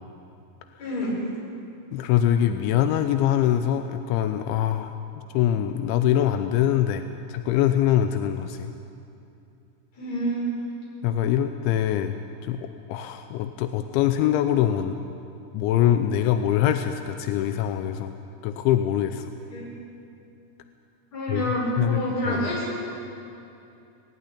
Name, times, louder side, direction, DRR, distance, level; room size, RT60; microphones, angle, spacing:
voice 1, 0.8-1.2 10.0-10.4 19.5-19.7 21.1-22.7, equal, 35° left, -4 dB, 6.1 m, -28 dB
voice 2, 1.9-8.7 11.0-15.0 15.5-18.1 18.4-19.3 21.3-22.5, left 11 dB, 85° left, 8 dB, 2.7 m, -24 dB
19.0 x 15.5 x 10.0 m, 2.6 s
omnidirectional pair, 6.0 m